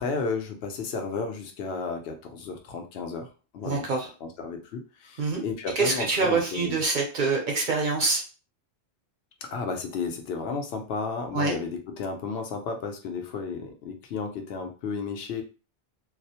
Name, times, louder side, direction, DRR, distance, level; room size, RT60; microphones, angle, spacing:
voice 1, 0.0-3.3 3.5-3.9 4.2-6.8 9.4-15.4, left 4 dB, 75° left, 5 dB, 0.8 m, -33 dB
voice 2, 3.6-4.1 5.2-5.4 5.8-8.2 11.3-11.5, right 4 dB, 55° right, 1 dB, 0.7 m, -25 dB
2.3 x 2.0 x 2.7 m, 0.34 s
omnidirectional pair, 1.1 m